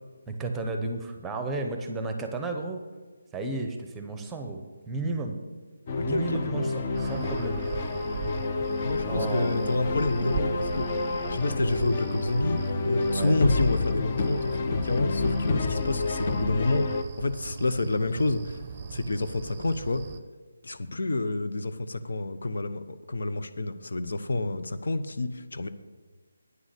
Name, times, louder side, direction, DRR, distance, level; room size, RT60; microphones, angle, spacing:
voice 1, 0.3-2.8 3.3-5.4 6.0-7.6 9.0-9.6 13.1-13.4, right 3 dB, 10° right, 5 dB, 0.9 m, -33 dB
voice 2, 5.9-6.7 8.8-18.6 18.9-20.1 20.6-25.7, left 2 dB, 70° left, 10 dB, 0.8 m, -29 dB
sound 1, 5.9-17.0, left 3 dB, 35° left, 0.8 m, -29 dB
sound 2, 6.9-20.2, right 6 dB, 30° right, 0.6 m, -39 dB
9.6 x 6.3 x 8.2 m, 1.4 s
figure-of-eight pair, 160°, 0 cm